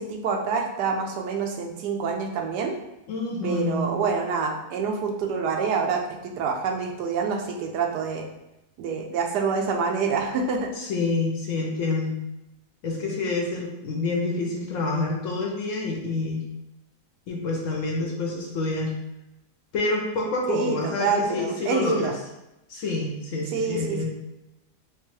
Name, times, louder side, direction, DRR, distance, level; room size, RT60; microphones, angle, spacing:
voice 1, 0.0-2.7 3.4-8.3 8.8-10.7 20.5-22.1 23.5-24.1, right 5 dB, 90° right, 3 dB, 1.2 m, -27 dB
voice 2, 3.1-3.9 10.8-12.2 12.8-16.5 17.3-18.9 19.7-22.1 22.7-24.1, left 3 dB, 60° left, -1 dB, 0.9 m, -27 dB
3.5 x 3.1 x 3.1 m, 0.93 s
omnidirectional pair, 1.7 m